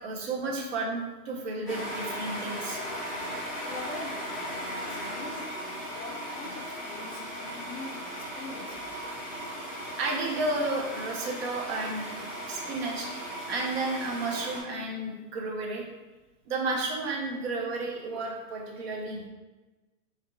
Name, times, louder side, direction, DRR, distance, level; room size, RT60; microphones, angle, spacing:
voice 1, 0.0-2.8 10.0-12.2 12.5-15.8 16.5-19.3, right 2 dB, 40° right, -1 dB, 0.8 m, -32 dB
sound 1, 1.7-14.6, equal, ahead, 0.5 m, -37 dB
voice 2, 3.7-9.0, left 3 dB, 65° left, 2 dB, 0.9 m, -44 dB
4.4 x 3.6 x 2.3 m, 1.2 s
hypercardioid pair, 150°, 47 cm